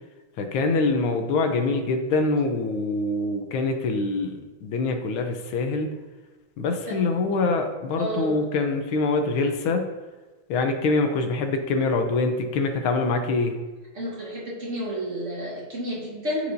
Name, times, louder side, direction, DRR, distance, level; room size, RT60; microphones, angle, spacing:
voice 1, 0.4-5.9 6.6-9.9 10.5-13.5, left 3 dB, 80° left, 6 dB, 1.5 m, -24 dB
voice 2, 8.0-8.3 13.9-16.5, equal, 40° right, -4 dB, 1.5 m, -31 dB
13.0 x 4.7 x 2.6 m, 1.2 s
omnidirectional pair, 2.3 m